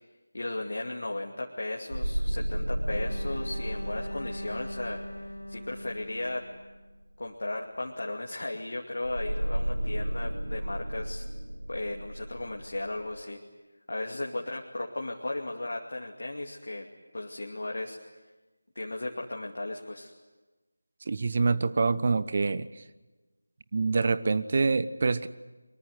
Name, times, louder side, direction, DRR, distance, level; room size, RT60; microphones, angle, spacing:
voice 1, 0.3-5.0 5.5-6.5 7.2-11.2 11.7-13.4 13.9-16.9 17.1-18.0 18.8-20.1, left 2 dB, 50° left, 0 dB, 2.5 m, -35 dB
sound 1, 1.9-6.3 9.0-13.2, equal, 75° right, 1.3 m, -33 dB
Bowed string instrument, 2.9-7.0, left 1 dB, 80° left, 2.7 m, -42 dB
voice 2, 21.1-22.7 23.7-25.3, right 4 dB, 35° right, 15 dB, 1.0 m, -26 dB
24.0 x 23.0 x 9.6 m, 1.2 s
figure-of-eight pair, 165°, 0 cm